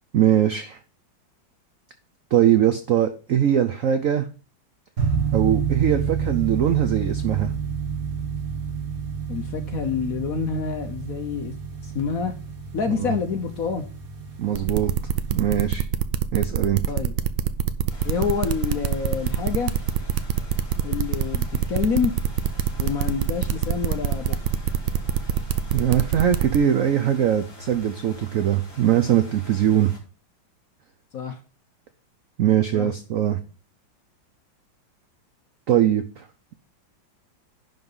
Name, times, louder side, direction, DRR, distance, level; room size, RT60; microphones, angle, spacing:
voice 1, 0.1-0.8 2.3-4.3 5.3-7.5 12.9-13.1 14.4-14.9 15.3-15.8 16.3-16.8 25.7-29.9 32.4-33.4 35.7-36.3, right 10 dB, 65° right, 9 dB, 0.8 m, -21 dB
sound 1, 5.0-15.8, right 6 dB, 45° right, 2.0 m, -29 dB
voice 2, 9.3-11.6 11.8-12.3 12.7-13.8 16.9-17.1 18.0-19.7 20.8-22.1 22.8-24.3 31.1-31.4 32.7-32.9, left 6 dB, 55° left, 6 dB, 1.1 m, -27 dB
sound 2, 14.5-26.6, right 10 dB, 80° right, 1.5 m, -24 dB
sound 3, 17.9-30.0, left 2 dB, 40° left, 3.6 m, -44 dB
10.5 x 3.9 x 5.4 m, 0.36 s
omnidirectional pair, 2.2 m